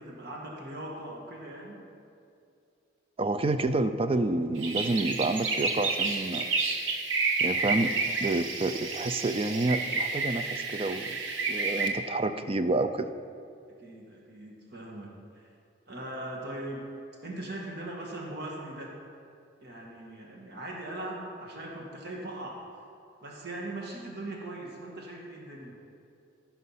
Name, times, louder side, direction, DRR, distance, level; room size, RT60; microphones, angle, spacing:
voice 1, 0.0-1.8 12.2-12.4 13.8-15.5 15.9-16.9 17.2-18.9 19.6-22.6 23.2-25.8, right 1 dB, 60° right, -2 dB, 1.6 m, -40 dB
voice 2, 3.2-6.5 7.4-11.2 11.5-13.1, right 2 dB, 30° right, 10 dB, 0.4 m, -29 dB
sound 1, 4.6-11.9, right 3 dB, 75° right, 1.1 m, -30 dB
15.0 x 5.7 x 5.6 m, 2.4 s
head